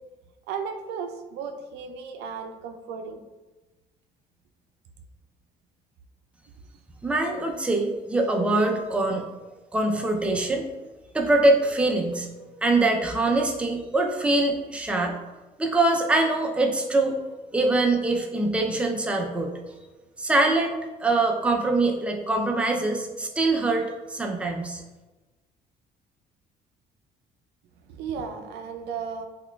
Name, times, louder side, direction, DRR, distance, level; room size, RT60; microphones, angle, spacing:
voice 1, 0.5-3.2 27.9-29.3, right 6 dB, 85° right, 6 dB, 0.4 m, -35 dB
voice 2, 7.0-9.2 9.7-10.7 11.1-12.3 12.6-15.2 15.6-19.5 20.2-24.8, right 2 dB, 5° right, 1 dB, 0.4 m, -23 dB
5.6 x 2.3 x 2.2 m, 1.2 s
cardioid pair, 110°, 17 cm